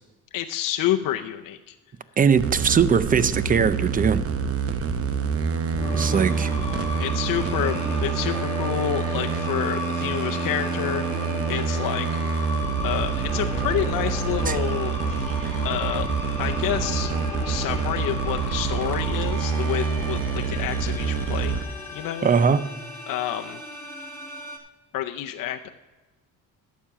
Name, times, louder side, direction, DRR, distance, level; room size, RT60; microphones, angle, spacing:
voice 1, 0.3-1.7 7.0-12.1 12.8-15.2 15.6-16.1 16.4-17.1 17.4-21.6 21.9-22.3 23.1-23.6 24.9-25.7, left 12 dB, 70° left, 5 dB, 0.6 m, -29 dB
voice 2, 2.2-4.2 5.9-6.5 14.5-14.6 22.2-22.6, right 6 dB, 25° right, 15 dB, 0.5 m, -20 dB
sound 1, 2.4-21.6, right 6 dB, 45° right, 0.9 m, -27 dB
sound 2, 5.7-24.6, left 3 dB, 20° left, 2.1 m, -35 dB
11.5 x 7.4 x 5.6 m, 1.2 s
cardioid pair, 120°, 34 cm